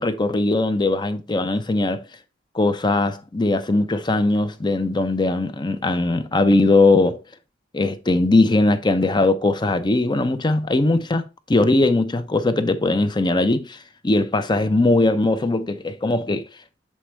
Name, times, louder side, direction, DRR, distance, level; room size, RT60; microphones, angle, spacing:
voice 1, 0.0-2.0 2.5-7.2 7.7-13.8 14.0-16.4, left 2 dB, 25° left, 0.6 m, -20 dB
7.5 x 4.2 x 3.3 m
head